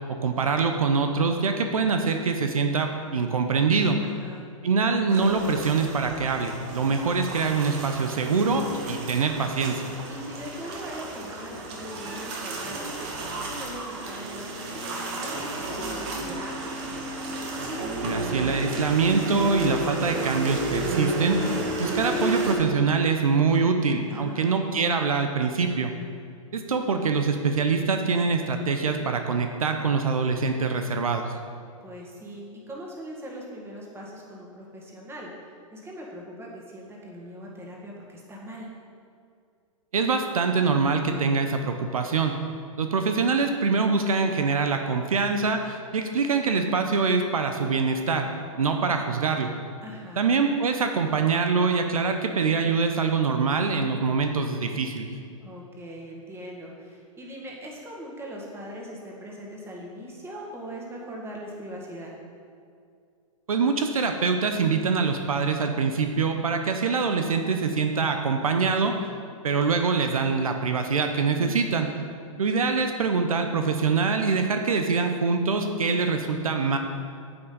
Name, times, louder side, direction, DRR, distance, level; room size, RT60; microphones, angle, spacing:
voice 1, 0.2-4.0 4.6-9.9 18.0-21.4 21.8-25.9 26.5-31.3 39.9-42.3 42.8-48.3 48.6-49.5 50.2-55.1 63.5-69.0 69.4-71.9 72.4-76.8, right 4 dB, 85° right, 5 dB, 0.8 m, -24 dB
voice 2, 4.0-4.4 10.1-16.6 24.1-24.5 31.8-38.7 49.8-50.2 55.4-62.1 71.4-71.8, equal, 15° right, -2 dB, 1.9 m, -41 dB
sound 1, 5.1-22.5, right 2 dB, 50° right, 1.9 m, -32 dB
9.4 x 8.0 x 4.0 m, 2.3 s
hypercardioid pair, 115°, 18 cm